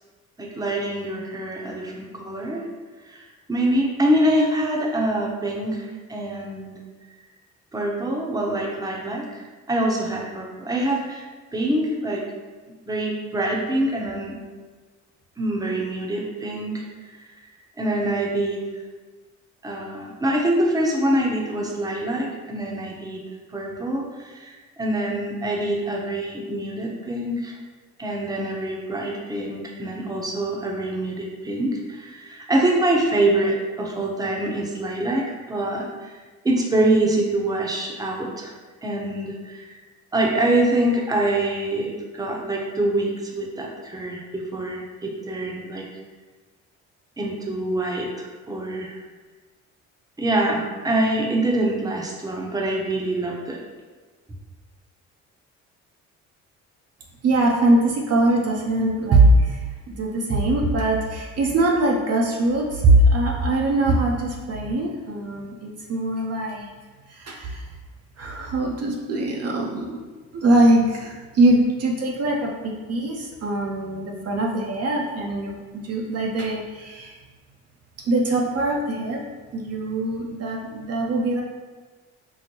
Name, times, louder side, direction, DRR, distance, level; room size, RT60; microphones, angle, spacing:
voice 1, 0.4-2.6 3.0-6.8 7.7-9.4 9.7-11.2 11.5-12.2 12.9-14.4 15.4-16.8 17.8-18.6 19.6-23.2 23.5-27.5 28.0-36.1 36.4-38.5 38.8-39.8 40.1-45.8 47.2-48.9 50.2-53.6, right 1 dB, 10° right, -2 dB, 0.7 m, -25 dB
voice 2, 57.2-66.7 67.1-67.6 68.2-70.0 70.3-72.5 72.9-77.2 78.0-79.2 79.5-81.4, right 1 dB, 50° right, -1 dB, 0.6 m, -22 dB
4.5 x 2.1 x 2.9 m, 1.3 s
supercardioid pair, 60°, 33 cm